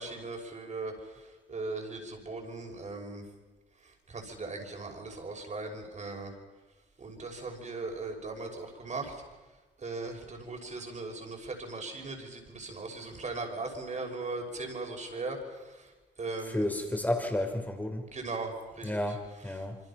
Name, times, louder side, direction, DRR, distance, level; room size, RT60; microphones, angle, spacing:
voice 1, 0.0-3.2 3.8-6.3 7.0-9.2 9.8-16.6 18.1-19.1 19.5-19.6, right 3 dB, 35° right, 3 dB, 5.9 m, -39 dB
voice 2, 16.5-18.0 18.8-19.8, left 1 dB, 10° left, 4 dB, 4.1 m, -31 dB
27.0 x 25.0 x 5.9 m, 1.2 s
cardioid pair, 90°, 20 cm